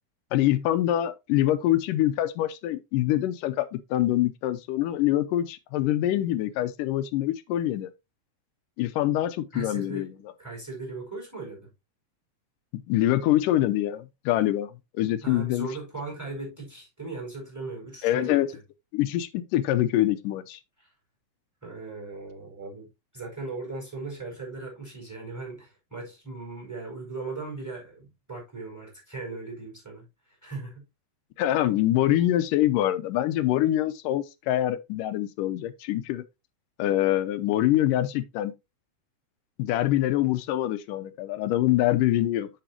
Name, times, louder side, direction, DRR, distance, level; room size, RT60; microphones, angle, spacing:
voice 1, 0.3-7.9 8.8-10.1 12.9-15.7 18.0-18.5 18.9-20.6 31.4-36.2 36.8-38.5 39.6-42.5, left 13 dB, 80° left, 2.3 m, -25 dB
voice 2, 9.5-11.7 15.2-18.6 20.8-20.9 21.6-30.8, right 3 dB, 5° right, 4.5 m, -38 dB
7.8 x 7.4 x 2.9 m
omnidirectional pair, 3.9 m